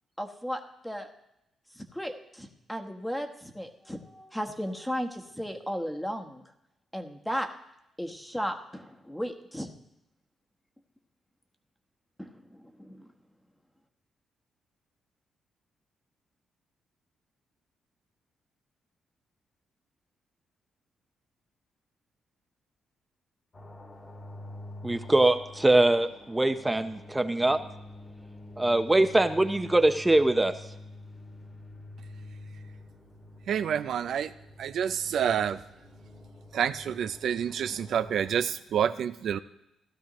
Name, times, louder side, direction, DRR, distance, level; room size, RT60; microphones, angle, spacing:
voice 1, 0.2-1.1 1.7-6.4 6.9-7.5 8.0-9.7 12.2-13.1, equal, 5° left, 4 dB, 1.1 m, -35 dB
sound 1, 23.5-38.5, left 2 dB, 35° left, 1.9 m, -47 dB
voice 2, 24.8-27.6 28.6-30.5, right 2 dB, 15° right, 9 dB, 0.6 m, -23 dB
voice 3, 33.5-34.3 34.6-35.6 36.5-39.4, right 8 dB, 70° right, 11 dB, 0.4 m, -28 dB
16.0 x 12.0 x 3.0 m, 0.87 s
cardioid pair, 90°, 0 cm